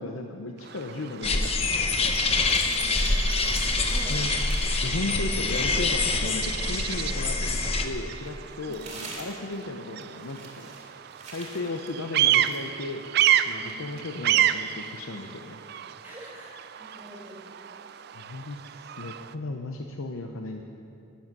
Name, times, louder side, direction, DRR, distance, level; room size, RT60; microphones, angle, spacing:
voice 1, 0.0-2.2 4.1-4.3 4.8-10.7 11.3-13.0 13.5-15.6 18.1-20.6, left 2 dB, 85° left, 3 dB, 0.7 m, -35 dB
Bird vocalization bird call bird song, 0.6-19.3, right 11 dB, 50° right, 0.3 m, -31 dB
sound 1, 1.2-7.9, left 3 dB, 30° left, 0.7 m, -25 dB
sound 2, 2.0-4.9 5.2-7.5 8.3-12.6, right 3 dB, 30° right, 2.1 m, -45 dB
voice 2, 2.6-4.4 8.7-8.9 13.6-13.8 16.0-16.5 16.8-17.4, equal, 10° right, -5 dB, 2.8 m, -46 dB
13.0 x 10.0 x 6.1 m, 2.5 s
head